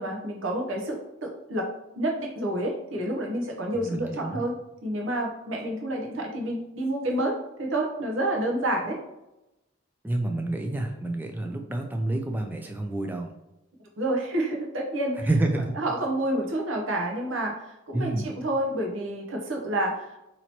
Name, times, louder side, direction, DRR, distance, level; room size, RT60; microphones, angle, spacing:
voice 1, 0.0-1.7 2.0-4.6 4.8-9.0 14.0-15.3 15.7-20.2, right 1 dB, 65° right, 0 dB, 0.8 m, -29 dB
voice 2, 3.7-4.4 10.0-13.3 15.3-15.7 17.9-18.3, right 2 dB, 10° right, 3 dB, 0.3 m, -28 dB
2.9 x 2.9 x 4.3 m, 0.92 s
head